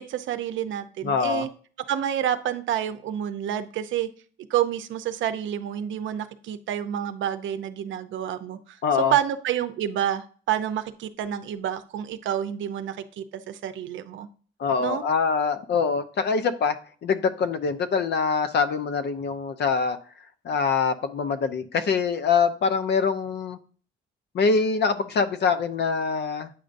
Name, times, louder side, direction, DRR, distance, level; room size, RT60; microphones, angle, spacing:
voice 1, 0.0-1.5 1.9-4.1 4.5-8.8 9.1-14.3 14.8-15.0, right 10 dB, 75° right, 10 dB, 0.6 m, -28 dB
voice 2, 1.0-1.5 8.8-9.1 14.6-16.8 17.0-20.0 20.4-23.6 24.3-26.5, left 5 dB, 60° left, 10 dB, 0.7 m, -24 dB
8.4 x 5.2 x 2.6 m, 0.42 s
cardioid pair, 90°, 20 cm